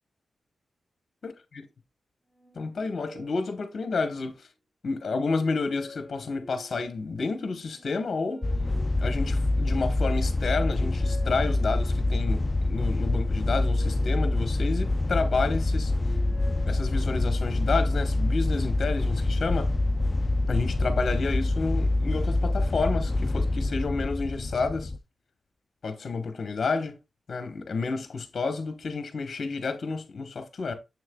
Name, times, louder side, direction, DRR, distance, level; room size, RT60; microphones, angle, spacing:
voice 1, 1.2-1.7 2.5-4.5 4.8-8.4 9.0-15.9 16.6-19.7 20.5-24.9 25.8-27.0 27.3-30.7, left 4 dB, 55° left, 1.0 m, -30 dB
sound 1, 2.3-4.4 4.9-6.9 7.6-9.7 10.2-12.2 12.9-15.1 15.6-17.6, left 1 dB, 5° left, 3.0 m, -49 dB
sound 2, 8.4-25.0, left 2 dB, 25° left, 0.4 m, -26 dB
7.3 x 6.4 x 2.2 m
wide cardioid pair, 95°, 0 cm